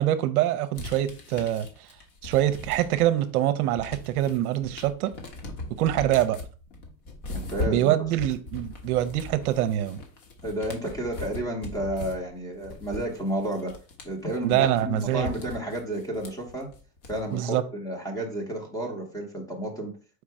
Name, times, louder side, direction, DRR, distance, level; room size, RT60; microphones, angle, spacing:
voice 1, 0.0-1.7 2.2-5.1 5.7-6.4 7.7-10.0 14.4-15.3 17.3-17.6, right 13 dB, 65° right, 0.6 m, -24 dB
sound 1, 0.7-3.2 3.5-17.5, left 2 dB, 45° left, 1.3 m, -39 dB
voice 2, 7.3-7.9 10.4-13.7 14.0-16.7 17.1-19.9, right 1 dB, 5° left, 0.7 m, -31 dB
4.6 x 2.5 x 4.5 m
supercardioid pair, 145°, 48 cm